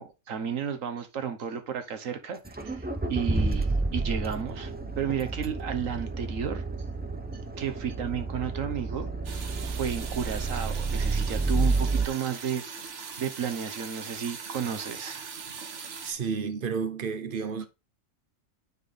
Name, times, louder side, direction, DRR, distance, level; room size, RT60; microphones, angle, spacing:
voice 1, 0.0-4.7 5.0-6.6 7.6-9.1 9.7-12.6 13.2-15.7, right 8 dB, 80° right, 1.5 m, -33 dB
Accelerating revving vroom, 2.5-12.1, right 3 dB, 15° right, 0.3 m, -30 dB
sound 1, 9.2-16.1, right 6 dB, 65° right, 1.3 m, -41 dB
voice 2, 16.0-17.7, right 5 dB, 45° right, 0.9 m, -31 dB
9.4 x 3.7 x 4.0 m
omnidirectional pair, 1.4 m